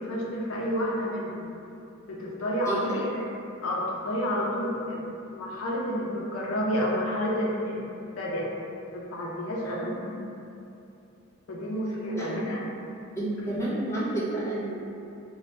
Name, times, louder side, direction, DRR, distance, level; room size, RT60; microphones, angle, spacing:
voice 1, 0.0-1.5 2.1-3.3 3.6-5.1 5.3-8.5 8.9-10.1 11.5-12.7, equal, 85° left, -3 dB, 0.5 m, -30 dB
voice 2, 2.6-3.0 9.6-9.8 12.1-12.3 13.2-14.8, right 2 dB, 15° left, -7 dB, 0.4 m, -30 dB
2.6 x 2.1 x 3.1 m, 2.7 s
head